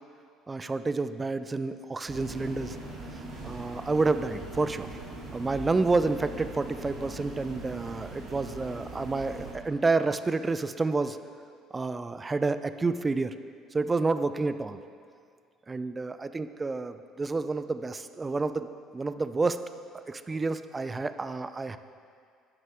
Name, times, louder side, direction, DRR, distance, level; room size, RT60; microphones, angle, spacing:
voice 1, 0.5-2.8 3.4-4.9 5.3-11.2 11.7-13.3 13.7-14.8 15.7-18.7 18.9-19.6 20.1-21.8, right 3 dB, 25° right, 11 dB, 0.5 m, -29 dB
sound 1, 2.1-9.5, right 1 dB, 60° right, 2.4 m, -41 dB
12.0 x 9.7 x 3.6 m, 2.2 s
hypercardioid pair, 55°, 0 cm